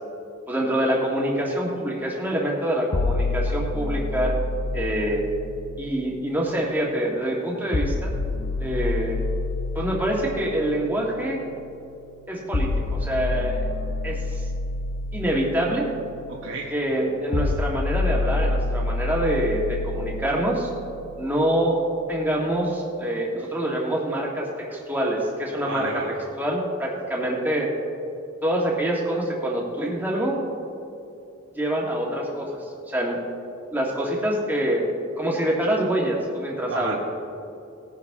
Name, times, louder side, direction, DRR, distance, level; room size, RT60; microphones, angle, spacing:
voice 1, 0.5-4.4 4.7-5.2 5.8-8.1 8.6-9.2 9.7-11.4 12.3-13.7 14.0-14.4 15.1-15.9 16.7-20.7 21.2-21.8 22.1-25.9 26.4-27.7 28.4-30.4 31.5-33.2 33.7-34.8 35.2-37.0, right 1 dB, 10° right, -3 dB, 1.7 m, -25 dB
sound 1, 2.9-6.9 7.7-21.8, left 2 dB, 75° left, 0.8 m, -29 dB
voice 2, 16.3-16.7 25.6-26.2 36.7-37.0, right 3 dB, 85° right, -2 dB, 1.1 m, -31 dB
19.0 x 10.0 x 3.7 m, 2.6 s
head